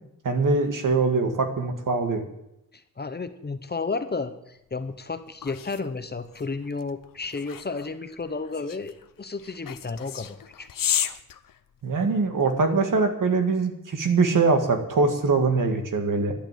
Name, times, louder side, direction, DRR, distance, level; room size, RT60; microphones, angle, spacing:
voice 1, 0.2-2.2 11.8-16.3, right 4 dB, 70° right, 5 dB, 1.8 m, -23 dB
voice 2, 2.7-11.1, left 4 dB, 30° left, 10 dB, 0.8 m, -33 dB
sound 1, 4.7-12.3, left 9 dB, 75° left, 0.7 m, -34 dB
12.0 x 10.5 x 7.4 m, 0.83 s
wide cardioid pair, 175°, 33 cm